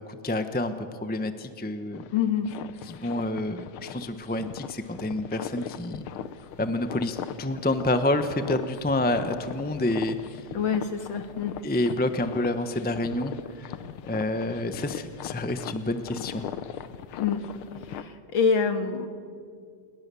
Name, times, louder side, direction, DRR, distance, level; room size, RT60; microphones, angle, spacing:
voice 1, 0.1-0.7 1.0-2.0 2.9-6.1 6.6-10.4 11.6-13.7 14.1-16.4, left 1 dB, 10° left, 9 dB, 0.4 m, -28 dB
sound 1, 1.9-18.0, left 9 dB, 90° left, 1.8 m, -39 dB
voice 2, 2.1-2.5 10.5-11.6 17.2-17.5 17.9-19.1, left 6 dB, 70° left, 7 dB, 2.4 m, -26 dB
28.5 x 22.0 x 7.0 m, 2.3 s
omnidirectional pair, 2.3 m